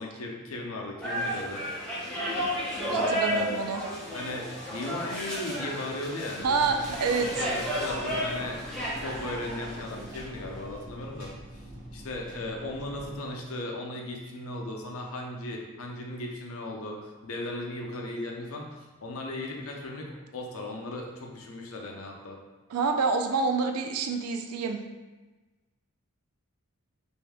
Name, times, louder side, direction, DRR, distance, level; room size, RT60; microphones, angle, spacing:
voice 1, 0.0-1.6 2.8-3.6 4.1-6.6 7.4-11.3 11.9-22.4, left 1 dB, 70° left, 0 dB, 0.6 m, -37 dB
sound 1, 1.0-10.7, equal, 5° left, 0.7 m, -32 dB
voice 2, 2.9-3.8 6.4-7.4 22.7-24.8, right 4 dB, 90° right, 6 dB, 0.4 m, -27 dB
sound 2, 6.4-13.2, equal, 40° right, 0.9 m, -45 dB
3.2 x 2.7 x 3.4 m, 1.2 s
head